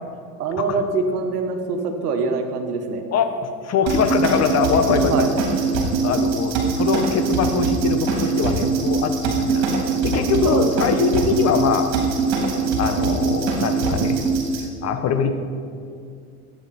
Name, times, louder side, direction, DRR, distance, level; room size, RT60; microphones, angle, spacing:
voice 1, 0.4-3.0 5.1-5.3 10.4-10.7 15.2-15.3, right 4 dB, 85° right, 6 dB, 1.5 m, -24 dB
voice 2, 3.6-5.2 5.8-9.6 10.0-11.9 12.8-14.2 14.8-15.5, left 6 dB, 35° left, 8 dB, 1.0 m, -22 dB
sound 1, 3.9-14.6, right 4 dB, 55° right, 3.2 m, -22 dB
14.5 x 8.8 x 4.3 m, 2.4 s
hypercardioid pair, 100°, 46 cm